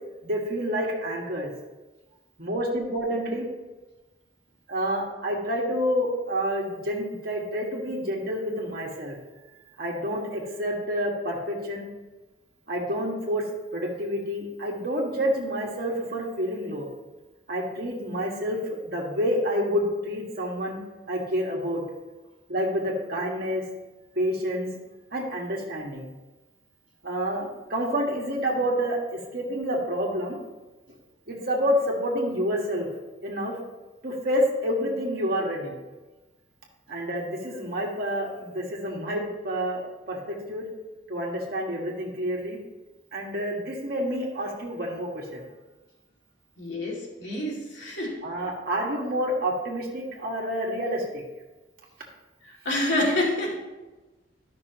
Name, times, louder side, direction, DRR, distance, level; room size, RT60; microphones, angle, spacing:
voice 1, 0.2-1.5 2.4-3.5 4.7-9.2 9.8-11.9 12.7-13.5 13.7-16.9 17.5-20.8 21.1-21.8 22.5-23.6 24.1-24.7 25.1-26.1 27.0-30.4 31.3-32.9 33.2-33.6 34.0-35.8 36.9-40.7 41.1-42.6 43.1-45.4 48.2-51.0, equal, 55° right, -2 dB, 1.7 m, -28 dB
voice 2, 46.6-48.2 52.4-53.6, left 1 dB, 75° left, -4 dB, 2.5 m, -27 dB
12.0 x 6.0 x 3.0 m, 1.1 s
head